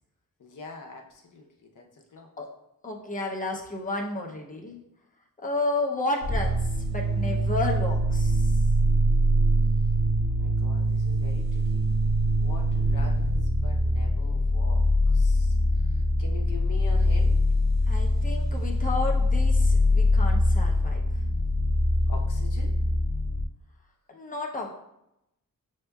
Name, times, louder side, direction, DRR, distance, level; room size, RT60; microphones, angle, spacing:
voice 1, 0.4-1.5 1.7-1.8 2.1-2.3 10.4-11.9 12.4-14.9 15.1-15.5 15.9-17.4 22.1-22.7, left 4 dB, 60° left, 0 dB, 0.8 m, -44 dB
voice 2, 2.8-4.8 5.4-8.6 17.9-21.0 24.1-24.7, left 2 dB, 25° left, 0 dB, 0.6 m, -32 dB
sound 1, 6.2-23.4, equal, 50° right, 0.5 m, -23 dB
6.5 x 2.7 x 2.3 m, 0.85 s
wide cardioid pair, 125°, 36 cm